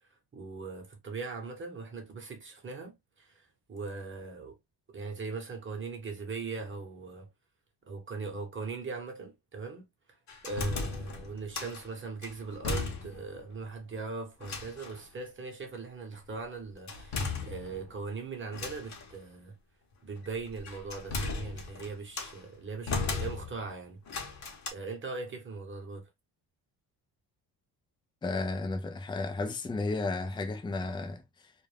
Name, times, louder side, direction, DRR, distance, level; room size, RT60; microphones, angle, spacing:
voice 1, 0.0-4.6 4.9-7.3 7.9-9.8 10.4-19.6 20.0-24.0 24.7-26.1, right 4 dB, 25° right, 1.0 m, -40 dB
sound 1, 10.3-11.9 12.2-13.4 13.6-13.7 14.4-15.0 16.9-18.0 18.5-19.1 20.2-22.4 22.9-23.7 24.1-24.7, left 3 dB, 40° left, 0.9 m, -36 dB
voice 2, 28.2-31.5, left 3 dB, 10° left, 0.4 m, -33 dB
2.5 x 2.1 x 3.2 m
cardioid pair, 110°, 43 cm